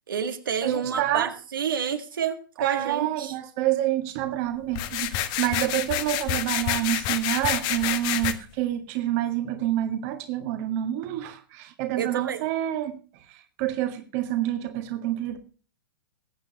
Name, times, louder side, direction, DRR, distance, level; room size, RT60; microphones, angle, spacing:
voice 1, 0.1-3.3 11.9-12.4, right 7 dB, 70° right, 6 dB, 1.9 m, -29 dB
voice 2, 0.6-1.3 2.6-15.4, right 13 dB, 45° right, 8 dB, 1.8 m, -28 dB
sound 1, 4.7-8.3, left 12 dB, 40° left, 1.4 m, -28 dB
22.0 x 9.1 x 3.0 m, 0.37 s
figure-of-eight pair, 110°, 12 cm